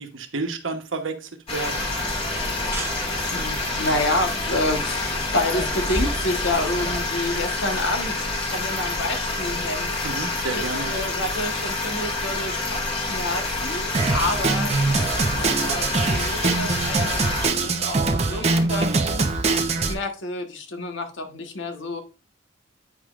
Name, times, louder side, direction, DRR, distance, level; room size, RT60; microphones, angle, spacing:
voice 1, 0.0-1.9 10.0-10.9 19.1-19.3, right 3 dB, 90° right, 1.1 m, -31 dB
sound 1, 1.5-17.5, left 2 dB, 30° left, 1.8 m, -28 dB
sound 2, 1.7-7.0, right 2 dB, 15° right, 1.3 m, -33 dB
voice 2, 2.8-9.9 10.5-19.5 19.7-22.0, left 2 dB, 70° left, 1.3 m, -29 dB
Drum kit, 13.9-19.9, right 3 dB, 35° right, 0.8 m, -23 dB
9.0 x 5.1 x 2.5 m
head